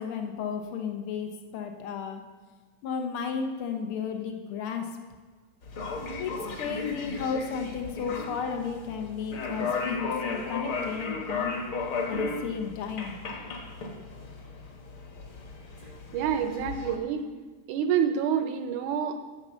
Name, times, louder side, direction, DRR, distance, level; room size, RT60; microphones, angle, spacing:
voice 1, 0.0-2.2 2.8-4.9 6.2-6.3 6.6-11.6 12.1-13.2, left 6 dB, 75° left, 4 dB, 1.2 m, -33 dB
sound 1, 5.6-17.0, left 4 dB, 50° left, 1.7 m, -35 dB
voice 2, 16.1-17.3 17.7-19.2, right 8 dB, 75° right, 7 dB, 1.9 m, -27 dB
10.5 x 7.2 x 6.8 m, 1.4 s
omnidirectional pair, 4.0 m